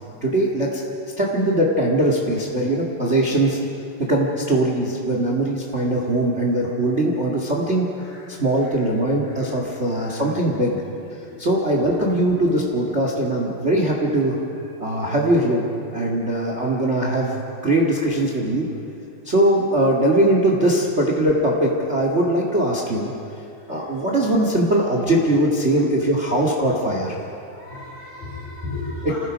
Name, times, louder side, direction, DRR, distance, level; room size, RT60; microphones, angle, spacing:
voice 1, 0.2-0.8 1.2-3.6 4.0-7.8 8.4-10.8 11.4-14.4 14.8-15.7 15.9-17.3 17.6-18.7 19.2-23.1 23.7-27.1 29.0-29.1, right 1 dB, 80° right, 0 dB, 0.6 m, -21 dB
voice 2, 9.2-10.2 11.3-11.4 16.1-16.3 23.7-23.9 27.5-29.1, left 2 dB, 50° left, -9 dB, 7.0 m, -36 dB
27.5 x 19.0 x 5.2 m, 2.6 s
omnidirectional pair, 4.9 m